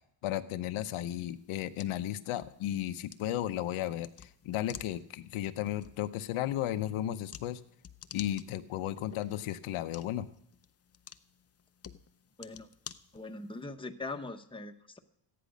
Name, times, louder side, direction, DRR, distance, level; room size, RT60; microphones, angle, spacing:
voice 1, 0.2-7.6 8.1-10.3, left 12 dB, 80° left, 9 dB, 0.8 m, -34 dB
Loading Magazine, 1.3-13.6, left 8 dB, 30° left, 0.6 m, -53 dB
voice 2, 13.1-15.0, left 3 dB, 10° left, 5 dB, 0.9 m, -41 dB
13.5 x 10.0 x 5.1 m, 0.71 s
cardioid pair, 80°, 50 cm